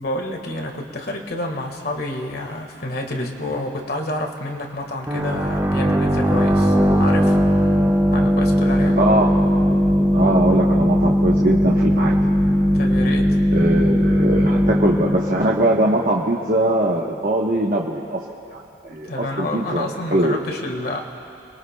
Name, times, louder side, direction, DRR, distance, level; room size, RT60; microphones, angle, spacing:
voice 1, 0.0-7.4 8.1-9.0 12.7-13.4 18.8-21.0, left 1 dB, 55° left, 2 dB, 1.6 m, -29 dB
sound 1, 5.1-16.5, equal, 15° right, 1.1 m, -18 dB
voice 2, 9.0-9.3 10.1-12.2 13.5-18.2 18.5-20.4, right 1 dB, 50° right, -3 dB, 1.1 m, -21 dB
29.0 x 22.0 x 2.3 m, 2.7 s
head